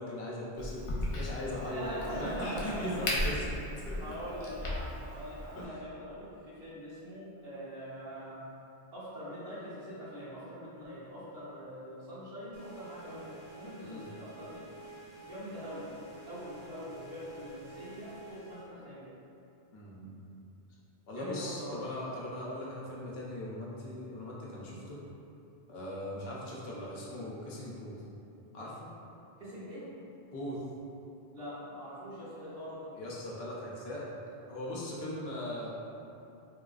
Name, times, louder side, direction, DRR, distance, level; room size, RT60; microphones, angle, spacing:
voice 1, 0.0-3.6 3.9-4.1 5.6-5.8 13.8-14.0 19.7-20.3 21.1-25.0 25.7-28.0 28.5-28.9 30.3-30.6 32.9-34.1 34.5-35.7, left 1 dB, 80° left, -5 dB, 0.9 m, -39 dB
Crack, 0.6-5.6, left 1 dB, 55° left, 0.3 m, -37 dB
voice 2, 1.6-3.4 4.0-8.4 8.9-14.6 15.2-15.9 16.3-19.1 21.1-21.8 29.4-29.9 31.3-32.8, equal, 75° right, -11 dB, 1.2 m, -43 dB
sound 1, 12.5-18.7, right 2 dB, 50° right, 0.7 m, -50 dB
3.4 x 2.3 x 2.4 m, 2.7 s
omnidirectional pair, 1.0 m